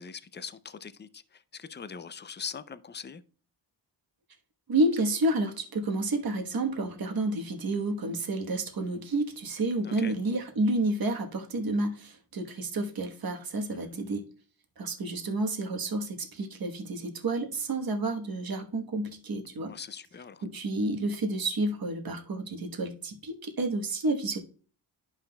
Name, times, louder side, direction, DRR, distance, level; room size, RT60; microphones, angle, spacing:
voice 1, 0.0-3.2 9.8-10.2 13.7-14.0 19.7-20.4, left 6 dB, 25° left, 0.4 m, -42 dB
voice 2, 4.7-14.2 14.8-19.7 20.4-24.4, right 2 dB, 55° right, 1.2 m, -30 dB
11.0 x 5.7 x 2.2 m
wide cardioid pair, 105°, 43 cm